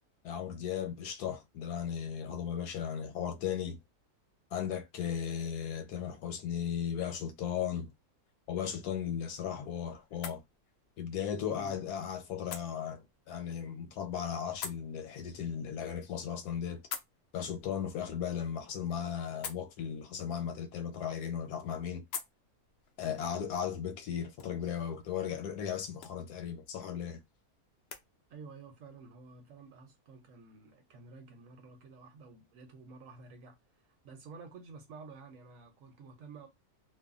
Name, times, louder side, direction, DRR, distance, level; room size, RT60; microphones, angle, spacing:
voice 1, 0.2-3.8 4.5-7.9 8.5-10.4 11.0-16.8 17.3-22.0 23.0-27.2, left 8 dB, 85° left, 1.2 m, -36 dB
sound 1, 8.6-28.1, left 7 dB, 65° left, 0.6 m, -50 dB
voice 2, 28.3-33.6 33.9-36.5, right 4 dB, 65° right, 1.0 m, -51 dB
3.3 x 2.1 x 2.4 m
omnidirectional pair, 1.6 m